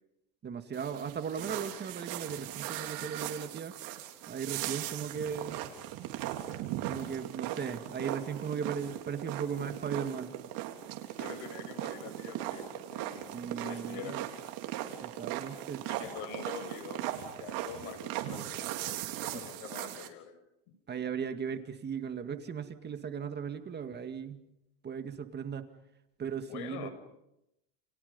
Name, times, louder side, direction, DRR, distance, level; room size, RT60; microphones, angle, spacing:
voice 1, 0.4-3.8 4.3-5.6 6.8-10.3 13.3-14.2 15.0-15.8 19.3-19.4 20.9-24.4 24.8-25.7 26.2-26.9, right 7 dB, 25° right, 8 dB, 2.0 m, -37 dB
sound 1, 0.7-20.1, right 13 dB, 65° right, 3.7 m, -39 dB
voice 2, 11.0-13.3 13.6-14.2 15.9-17.1 17.4-20.4 26.5-26.9, left 8 dB, 70° left, 10 dB, 5.8 m, -45 dB
30.0 x 30.0 x 5.4 m, 0.85 s
supercardioid pair, 125°, 37 cm